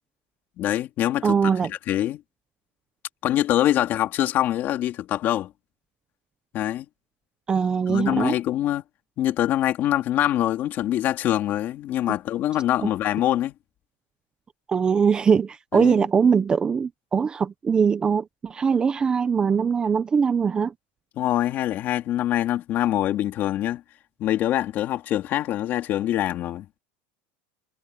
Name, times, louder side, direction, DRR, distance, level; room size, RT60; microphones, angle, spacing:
voice 1, 0.6-2.2 3.2-5.5 6.5-6.9 7.9-8.8 9.2-13.5 15.7-16.1 21.2-23.8 24.2-26.7, left 13 dB, 35° left, 2.9 m, -24 dB
voice 2, 1.2-1.7 7.5-8.4 12.8-12.9 14.7-20.7, right 6 dB, 15° right, 0.7 m, -21 dB
supercardioid pair, 165°, 6 cm